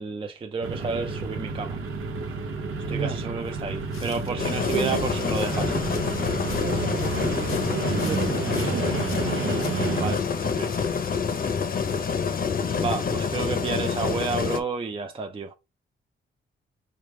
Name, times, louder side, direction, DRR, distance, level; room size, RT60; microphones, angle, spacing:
voice 1, 0.0-1.8 2.9-5.7 10.0-10.7 12.8-15.5, right 4 dB, 25° right, 0.4 m, -31 dB
sound 1, 0.6-10.1, right 4 dB, 85° right, 0.8 m, -30 dB
voice 2, 2.9-3.2 4.7-5.1 6.6-8.9, right 5 dB, 50° right, 0.8 m, -33 dB
sound 2, 3.5-12.5, left 7 dB, 80° left, 0.8 m, -47 dB
sound 3, 4.4-14.6, left 6 dB, 45° left, 0.7 m, -27 dB
4.8 x 2.4 x 3.2 m
cardioid pair, 115°, 21 cm